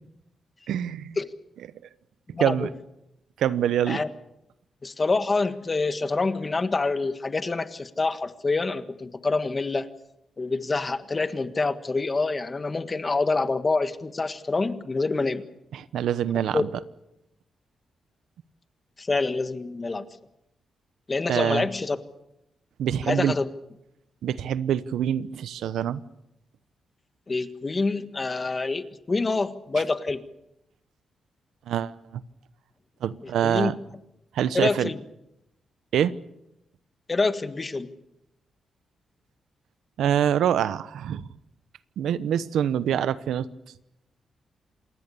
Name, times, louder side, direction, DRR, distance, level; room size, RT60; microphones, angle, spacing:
voice 1, 0.7-1.2 2.4-2.7 3.4-4.0 15.7-16.7 21.3-21.7 22.8-23.3 24.2-26.0 31.7-32.2 33.0-33.7 34.3-34.9 35.9-36.2 40.0-41.3 42.0-43.5, right 9 dB, 85° right, 16 dB, 0.9 m, -25 dB
voice 2, 2.3-2.7 3.9-4.1 4.8-9.9 10.4-15.4 16.5-16.6 19.0-20.0 21.1-22.0 23.1-23.5 27.3-30.2 33.4-33.7 34.5-35.0 37.1-37.9, left 3 dB, 30° left, 11 dB, 1.5 m, -26 dB
27.0 x 20.0 x 7.0 m, 0.85 s
cardioid pair, 100°, 0 cm